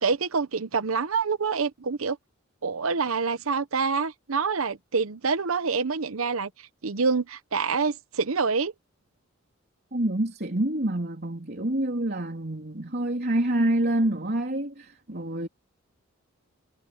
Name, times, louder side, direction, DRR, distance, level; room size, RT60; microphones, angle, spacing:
voice 1, 0.0-2.2 2.6-6.5 6.8-8.7, right 5 dB, 90° right, 0.9 m, -26 dB
voice 2, 9.9-15.5, right 1 dB, 50° right, 3.5 m, -27 dB
head